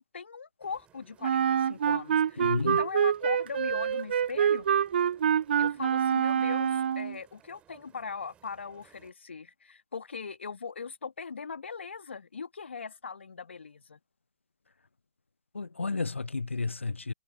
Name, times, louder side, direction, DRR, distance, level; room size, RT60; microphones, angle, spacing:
voice 1, 0.0-4.7 5.6-14.0, left 5 dB, 70° left, 1.9 m, -40 dB
sound 1, 0.6-9.1, right 10 dB, 20° right, 6.2 m, -62 dB
Wind instrument woodwind instrument, 1.2-7.2, right 8 dB, 60° right, 0.5 m, -26 dB
voice 2, 2.4-2.8 15.5-17.1, left 4 dB, 85° left, 0.3 m, -31 dB
figure-of-eight pair, 125°, 7 cm